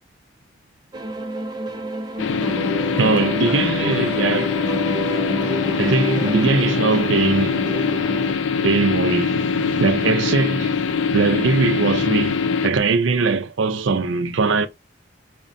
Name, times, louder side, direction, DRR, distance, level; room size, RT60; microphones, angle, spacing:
sound 1, 0.9-8.3, equal, 20° right, 0.4 m, -29 dB
sound 2, 2.2-12.7, left 5 dB, 75° left, 0.4 m, -23 dB
voice 1, 3.0-4.5 5.8-7.6 8.6-10.8 11.1-14.7, right 3 dB, 80° right, 0.5 m, -20 dB
5.0 x 2.1 x 2.5 m
head